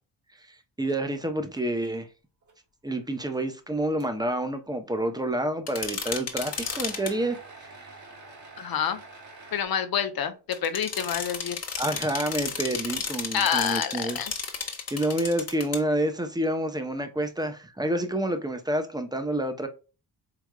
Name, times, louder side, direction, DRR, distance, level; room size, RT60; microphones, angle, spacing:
voice 1, 0.8-2.1 2.8-7.4 7.8-7.9 11.8-14.2 14.9-19.7, right 1 dB, 10° right, 0.8 m, -28 dB
sound 1, 1.6-2.0 2.4-2.5 3.2-3.3 4.0-4.1 6.5-9.7, right 2 dB, 45° right, 1.6 m, -46 dB
sound 2, 5.7-7.1 10.5-15.8, left 5 dB, 35° left, 1.2 m, -33 dB
voice 2, 8.6-9.0 9.5-11.6 13.3-14.3, left 8 dB, 55° left, 0.9 m, -28 dB
4.8 x 3.4 x 2.3 m
cardioid pair, 90°, 43 cm